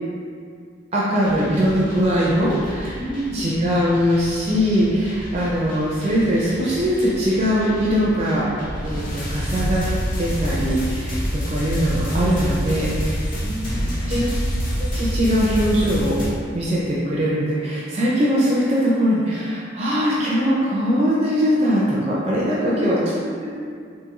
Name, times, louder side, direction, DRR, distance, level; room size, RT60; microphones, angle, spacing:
voice 1, 0.9-3.0 3.3-9.8 10.2-13.2 14.1-14.2 14.8-16.2 16.5-23.0, equal, 30° right, -6 dB, 0.4 m, -21 dB
sound 1, 1.2-16.3, equal, 45° left, 0.7 m, -28 dB
voice 2, 3.0-3.5 13.4-14.2 22.6-23.5, equal, 25° left, -12 dB, 1.4 m, -30 dB
3.6 x 2.7 x 2.9 m, 2.2 s
head